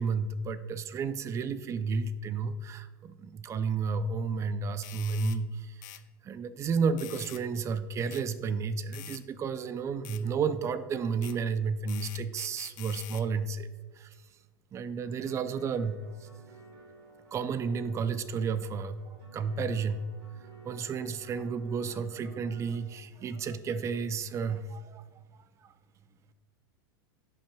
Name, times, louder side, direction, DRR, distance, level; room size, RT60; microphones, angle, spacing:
voice 1, 0.0-6.0 6.2-13.7 14.0-14.1 14.7-16.3 17.3-19.0 19.3-20.0 20.6-25.0 25.6-25.7, right 5 dB, 25° right, 13 dB, 0.4 m, -32 dB
sound 1, 4.8-5.4 5.8-6.0 7.0-7.4 8.1-8.2 8.9-9.2 10.0-10.2 11.2-11.4 11.9-13.3, left 17 dB, 60° left, 0.4 m, -46 dB
sound 2, 15.0-22.9, right 2 dB, 75° right, 1.4 m, -55 dB
10.0 x 5.6 x 2.2 m, 1.4 s
hypercardioid pair, 95°, 12 cm